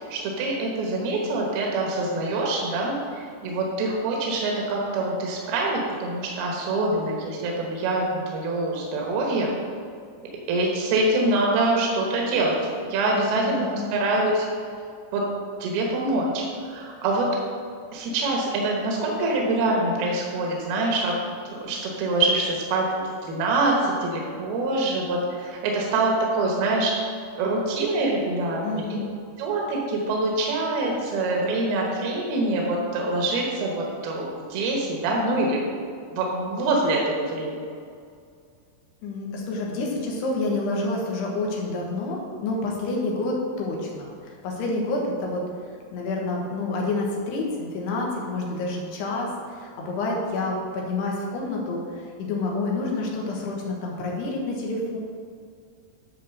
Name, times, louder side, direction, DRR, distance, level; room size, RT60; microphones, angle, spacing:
voice 1, 0.1-9.5 10.5-12.6 12.9-14.5 15.1-15.3 15.6-17.3 17.9-21.2 21.5-27.0 27.4-28.8 29.4-35.6 36.1-37.8, right 2 dB, 70° right, -1 dB, 2.9 m, -25 dB
voice 2, 13.5-14.0 28.6-29.2 39.0-45.4 45.9-55.0, left 2 dB, 80° left, -1 dB, 3.4 m, -28 dB
10.0 x 4.4 x 6.6 m, 2.3 s
omnidirectional pair, 4.8 m